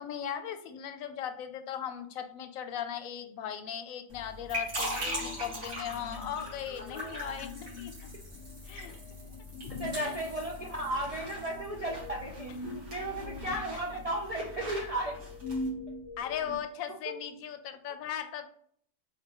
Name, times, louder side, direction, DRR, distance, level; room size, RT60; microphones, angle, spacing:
voice 1, 0.0-7.9 8.6-8.9 10.0-10.2 13.5-13.6 13.9-14.0 16.2-18.5, left 9 dB, 85° left, 9 dB, 1.0 m, -38 dB
sound 1, 4.1-15.7, equal, 80° right, 1.9 m, -41 dB
sound 2, 4.8-16.6, left 2 dB, 60° left, 0.9 m, -44 dB
voice 2, 7.0-7.3 9.8-15.2 17.1-17.2, right 1 dB, 55° right, -1 dB, 0.4 m, -35 dB
4.2 x 3.6 x 2.9 m, 0.62 s
omnidirectional pair, 1.4 m